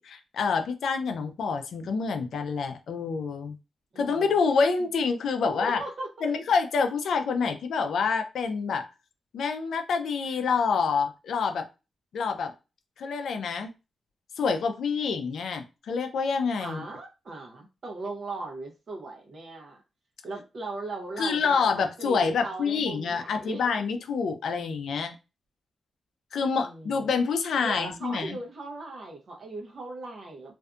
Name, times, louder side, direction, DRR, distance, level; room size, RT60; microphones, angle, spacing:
voice 1, 0.0-3.6 4.0-5.8 6.2-8.9 9.3-11.7 12.1-12.5 13.0-13.7 14.4-16.8 21.2-25.1 26.3-28.4, left 5 dB, 85° left, 0.4 m, -27 dB
voice 2, 3.9-4.2 4.8-4.9 5.4-6.1 16.6-19.8 20.2-23.6 26.5-27.1 27.6-30.5, right 2 dB, 50° right, 0.7 m, -38 dB
2.6 x 2.2 x 2.4 m
wide cardioid pair, 160°, 0 cm